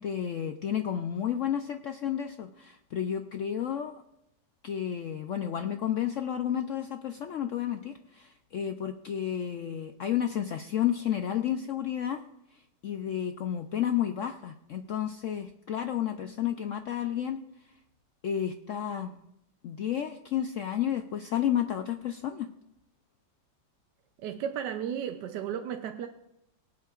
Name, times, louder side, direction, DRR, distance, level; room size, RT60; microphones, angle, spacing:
voice 1, 0.0-3.9 4.6-12.2 12.8-17.4 18.2-19.1 19.6-22.5, left 10 dB, 80° left, 7 dB, 0.6 m, -31 dB
voice 2, 24.2-26.1, right 9 dB, 75° right, 5 dB, 1.2 m, -34 dB
23.5 x 8.3 x 2.4 m, 0.82 s
omnidirectional pair, 1.9 m